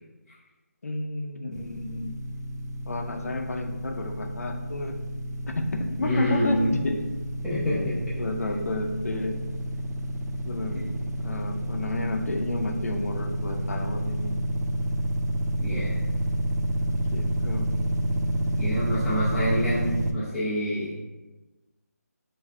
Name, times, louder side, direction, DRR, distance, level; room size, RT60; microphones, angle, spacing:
voice 1, 0.8-2.2 2.9-5.0 5.5-7.0 7.5-9.4 10.4-10.8 11.2-14.3 16.9-17.8, left 2 dB, 65° left, 4 dB, 0.5 m, -32 dB
sound 1, 1.5-20.1, right 1 dB, 80° right, 0.4 m, -29 dB
voice 2, 6.0-6.8 7.4-8.0 10.7-10.9 15.6-16.0 18.6-20.9, equal, ahead, -13 dB, 0.3 m, -27 dB
3.5 x 2.5 x 3.2 m, 1.2 s
figure-of-eight pair, 165°, 9 cm